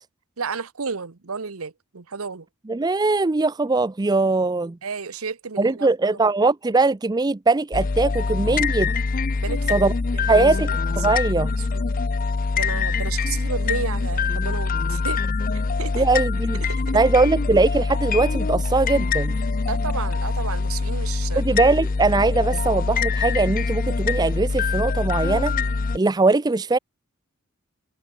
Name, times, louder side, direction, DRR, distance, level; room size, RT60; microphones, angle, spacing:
voice 1, 0.4-2.5 4.8-6.2 9.4-9.6 10.1-10.7 11.7-11.9 12.5-15.2 15.8-16.1 16.7-17.0 19.7-21.4, right 5 dB, 80° right, 1.0 m, -32 dB
voice 2, 2.7-4.8 5.6-8.9 9.7-9.9 10.3-10.7 11.0-11.5 15.9-16.6 16.9-19.4 21.4-25.5 25.9-26.8, right 3 dB, 20° right, 0.4 m, -21 dB
sound 1, 7.7-26.0, left 4 dB, 40° left, 0.6 m, -24 dB
head